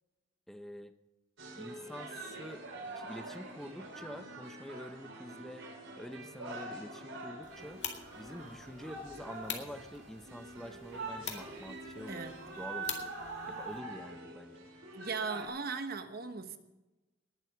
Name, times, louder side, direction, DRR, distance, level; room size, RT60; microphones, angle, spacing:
voice 1, 0.5-0.9 1.6-2.7 2.9-5.7 6.0-7.8 8.1-12.3 12.6-13.1 13.5-14.7, equal, ahead, 9 dB, 0.7 m, -47 dB
sound 1, 1.4-15.5, right 2 dB, 75° right, 4.2 m, -45 dB
sound 2, 7.4-13.8, left 8 dB, 60° left, 2.2 m, -46 dB
voice 2, 14.9-16.6, right 4 dB, 50° right, 8 dB, 1.2 m, -38 dB
19.5 x 7.7 x 6.0 m, 1.0 s
head